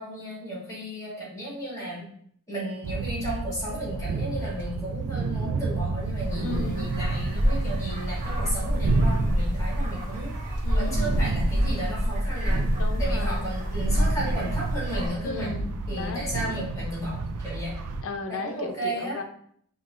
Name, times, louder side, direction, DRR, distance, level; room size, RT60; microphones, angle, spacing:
voice 1, 0.0-2.1 2.5-10.4 10.7-12.7 13.0-15.5 15.9-17.8 18.3-19.2, right 1 dB, 15° left, -5 dB, 1.5 m, -34 dB
sound 1, 2.8-18.0, right 3 dB, 90° right, 0.4 m, -31 dB
sound 2, 6.0-15.1, equal, 35° right, 0.8 m, -27 dB
voice 2, 6.4-6.9 10.6-11.1 12.8-13.5 15.2-16.3 18.0-19.2, left 3 dB, 60° left, 5 dB, 0.5 m, -35 dB
5.4 x 2.7 x 2.4 m, 0.65 s
head